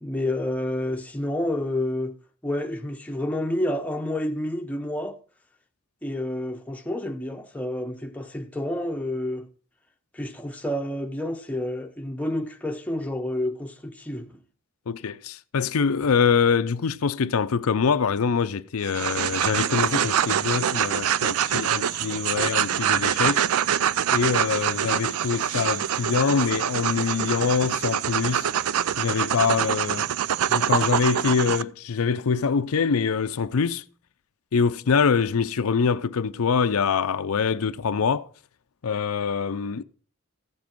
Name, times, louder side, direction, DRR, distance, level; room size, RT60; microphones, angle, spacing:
voice 1, 0.0-2.1 2.4-5.2 6.0-9.5 10.1-14.4, left 1 dB, 5° left, 0.8 m, -29 dB
voice 2, 14.9-23.4 24.1-28.5 29.0-30.1 30.5-33.8 34.5-38.3 38.8-39.8, left 6 dB, 85° left, 0.5 m, -24 dB
sound 1, 18.8-31.6, right 9 dB, 80° right, 0.4 m, -25 dB
14.5 x 7.3 x 4.5 m
head